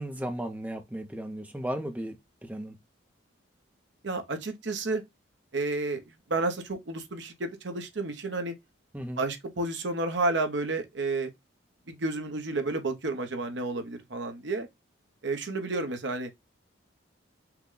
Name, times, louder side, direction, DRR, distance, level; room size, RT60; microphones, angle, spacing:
voice 1, 0.0-2.8 8.9-9.2, right 1 dB, 10° right, 0.6 m, -35 dB
voice 2, 4.0-5.0 5.5-6.0 6.3-8.5 9.2-11.3 11.9-14.7 15.2-16.3, right 2 dB, 65° right, 0.9 m, -31 dB
5.8 x 2.2 x 3.8 m
head